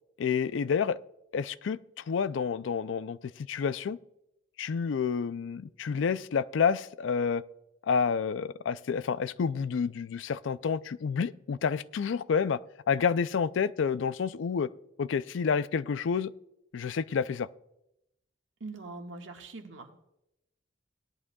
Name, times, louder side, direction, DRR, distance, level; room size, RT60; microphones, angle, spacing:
voice 1, 0.2-1.0 1.3-4.0 4.6-7.4 7.9-12.6 12.9-14.7 15.0-16.3 16.7-17.5, left 6 dB, 70° left, 16 dB, 0.4 m, -29 dB
voice 2, 18.6-19.9, right 3 dB, 75° right, 3 dB, 1.6 m, -42 dB
18.0 x 11.0 x 2.3 m, 0.85 s
head